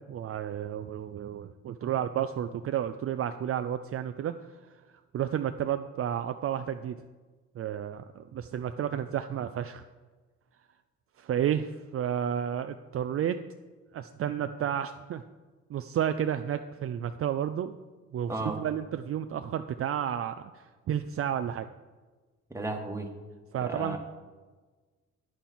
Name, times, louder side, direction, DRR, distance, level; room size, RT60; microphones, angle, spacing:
voice 1, 0.1-4.6 5.1-7.0 7.6-9.8 11.2-13.4 13.9-15.2 15.7-17.8 18.1-21.7 23.5-24.0, right 9 dB, 50° right, 9 dB, 0.5 m, -31 dB
voice 2, 18.3-18.6 22.5-23.1 23.6-24.0, right 2 dB, 10° right, 2 dB, 1.5 m, -34 dB
10.0 x 9.0 x 4.4 m, 1.3 s
cardioid pair, 90°, 30 cm